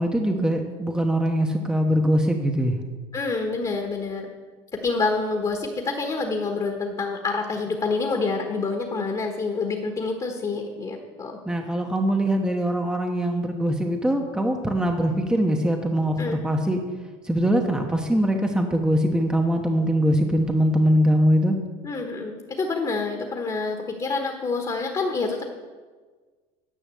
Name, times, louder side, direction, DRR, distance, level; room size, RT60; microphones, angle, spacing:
voice 1, 0.0-2.8 11.4-16.8 17.2-21.6, equal, 5° right, 3 dB, 1.0 m, -22 dB
voice 2, 3.1-4.3 4.8-11.4 16.2-16.4 21.8-25.4, left 3 dB, 25° left, 3 dB, 1.4 m, -27 dB
10.0 x 6.0 x 7.6 m, 1.4 s
supercardioid pair, 115°, 17 cm